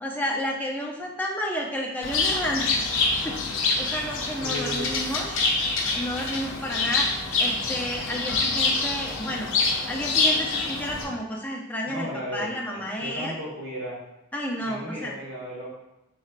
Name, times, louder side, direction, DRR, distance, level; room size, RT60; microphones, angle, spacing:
voice 1, 0.0-2.7 3.2-3.4 3.8-5.3 5.9-7.1 7.4-9.5 9.9-13.3 14.3-15.1, equal, 5° left, -1 dB, 0.5 m, -31 dB
Bird, 2.0-11.0, left 3 dB, 60° left, 0.6 m, -26 dB
voice 2, 4.4-4.9 11.9-14.0 14.6-15.7, equal, 65° right, -6 dB, 1.5 m, -35 dB
4.4 x 3.2 x 2.5 m, 0.96 s
head